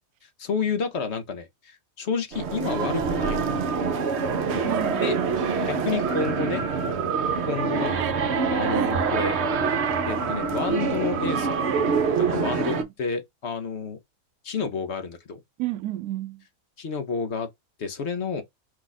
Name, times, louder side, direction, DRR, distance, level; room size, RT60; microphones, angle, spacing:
voice 1, 0.2-3.8 5.0-5.2 5.7-6.7 7.5-8.0 8.5-9.3 10.1-14.0 14.4-15.4 16.8-17.5 17.8-18.4, left 5 dB, 55° left, 1.0 m, -30 dB
sound 1, 2.3-12.8, right 5 dB, 55° right, 1.0 m, -25 dB
voice 2, 4.7-5.1 8.0-8.1 8.7-9.0 12.6-12.9 15.6-16.4, right 14 dB, 90° right, 1.1 m, -31 dB
4.8 x 2.4 x 4.0 m
omnidirectional pair, 1.5 m